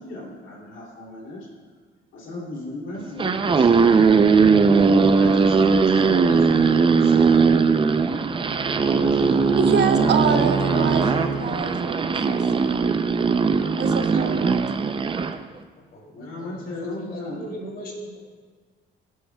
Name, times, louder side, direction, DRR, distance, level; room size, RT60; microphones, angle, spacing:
voice 1, 0.0-1.5 2.1-4.1 4.7-6.8 8.8-10.4 10.7-12.1 16.1-17.4, left 2 dB, 75° left, -3 dB, 2.7 m, -35 dB
sound 1, 3.0-15.4, right 5 dB, 25° right, 0.5 m, -19 dB
voice 2, 6.1-7.6 15.9-18.2, left 1 dB, 50° left, -2 dB, 2.9 m, -38 dB
Bowed string instrument, 7.6-11.5, right 4 dB, 20° left, 1.7 m, -28 dB
voice 3, 9.6-13.0 13.7-14.5, right 5 dB, 60° right, 6 dB, 0.8 m, -26 dB
18.5 x 7.7 x 2.3 m, 1.5 s
cardioid pair, 90°, 20 cm